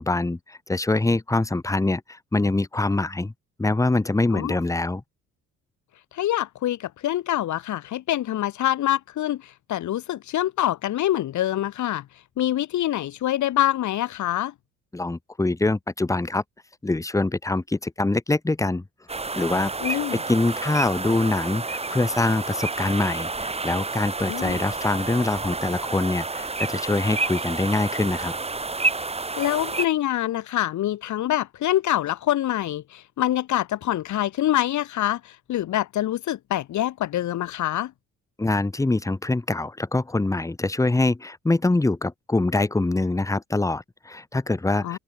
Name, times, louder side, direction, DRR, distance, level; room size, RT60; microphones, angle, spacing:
voice 1, 0.0-3.3 3.6-5.0 14.9-16.4 16.8-18.8 19.3-20.0 20.3-28.3 38.4-45.0, left 2 dB, 10° left, 1.2 m, -24 dB
voice 2, 6.1-12.1 12.4-14.5 19.8-20.2 24.3-24.6 29.4-37.9 44.8-45.0, left 13 dB, 70° left, 1.6 m, -25 dB
sound 1, 19.1-29.9, right 3 dB, 20° right, 2.5 m, -30 dB
open air
cardioid pair, 90°, 30 cm